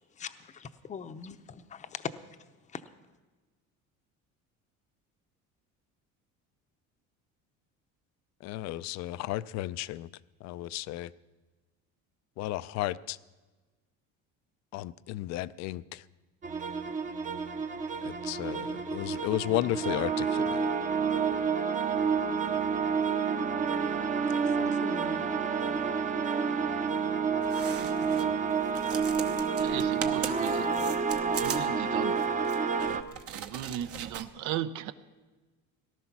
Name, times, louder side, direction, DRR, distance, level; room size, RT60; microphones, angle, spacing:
voice 1, 0.2-2.1 2.7-2.8 24.4-25.3, left 7 dB, 25° left, 9 dB, 0.7 m, -41 dB
voice 2, 8.4-10.1 10.4-11.1 12.4-13.2 14.7-16.0 18.0-20.7, left 15 dB, 60° left, 16 dB, 0.5 m, -33 dB
sound 1, 16.4-33.0, right 5 dB, 25° right, 0.8 m, -29 dB
sound 2, 27.4-28.3 28.6-34.2, right 8 dB, 50° right, 1.0 m, -40 dB
voice 3, 29.6-30.7 31.4-32.2 33.3-34.9, right 11 dB, 70° right, 12 dB, 0.8 m, -36 dB
18.5 x 12.0 x 6.0 m, 1.3 s
cardioid pair, 130°, 31 cm